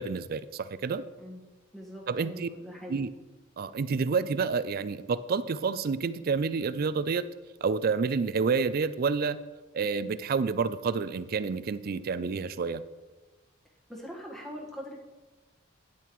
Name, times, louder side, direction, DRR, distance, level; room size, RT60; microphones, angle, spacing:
voice 1, 0.0-1.0 2.1-2.5 2.9-3.1 3.6-7.2 7.6-9.4 9.7-12.8, right 5 dB, 45° right, 14 dB, 0.4 m, -29 dB
voice 2, 1.7-3.0 13.9-15.0, equal, ahead, -3 dB, 1.4 m, -42 dB
10.0 x 9.2 x 3.1 m, 1.2 s
head